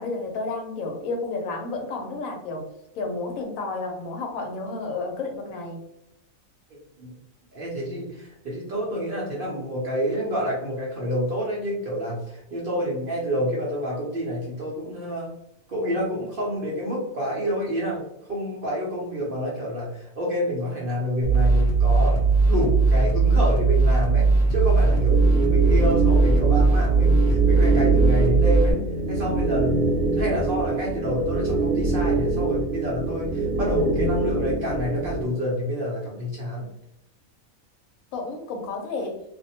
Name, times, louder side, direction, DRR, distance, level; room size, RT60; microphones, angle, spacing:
voice 1, 0.0-2.6 2.9-5.8 30.2-30.3 38.1-39.2, left 3 dB, 80° left, 2 dB, 1.0 m, -31 dB
voice 2, 7.5-15.3 15.7-18.0 18.3-22.2 22.5-25.2 25.5-28.8 29.1-36.7, equal, 50° right, -5 dB, 0.7 m, -28 dB
sound 1, 21.2-28.7, right 3 dB, 40° left, 1.0 m, -19 dB
sound 2, 24.9-35.2, right 3 dB, 80° right, 1.1 m, -25 dB
2.5 x 2.1 x 2.7 m, 0.80 s
omnidirectional pair, 1.5 m